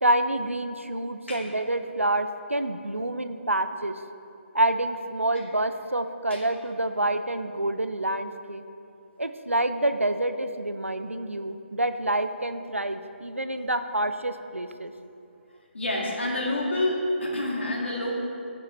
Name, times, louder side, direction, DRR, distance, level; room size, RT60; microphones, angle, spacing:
voice 1, 0.0-4.0 4.5-8.6 9.2-14.9, right 1 dB, 90° right, 9 dB, 0.5 m, -27 dB
voice 2, 15.7-18.1, left 1 dB, 60° left, -2 dB, 2.0 m, -28 dB
13.0 x 5.6 x 3.3 m, 2.6 s
figure-of-eight pair, 145°, 7 cm